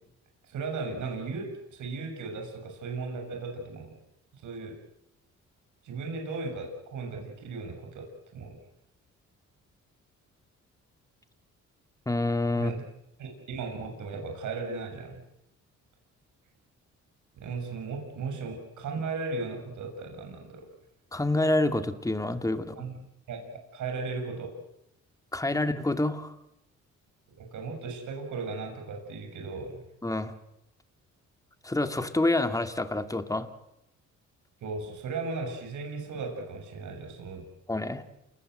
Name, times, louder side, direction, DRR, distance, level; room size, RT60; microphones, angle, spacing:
voice 1, 0.4-3.9 4.4-4.8 5.8-8.1 8.3-8.5 12.5-12.8 13.2-15.2 17.4-20.7 22.8-23.0 23.3-23.4 23.7-24.5 27.4-29.8 34.6-37.4, right 4 dB, 75° right, 3 dB, 7.0 m, -36 dB
voice 2, 12.1-12.7 21.1-22.7 25.3-26.3 30.0-30.3 31.6-33.5 37.7-38.0, left 2 dB, 10° left, 8 dB, 2.3 m, -27 dB
29.0 x 19.5 x 8.0 m, 0.85 s
cardioid pair, 90°, 30 cm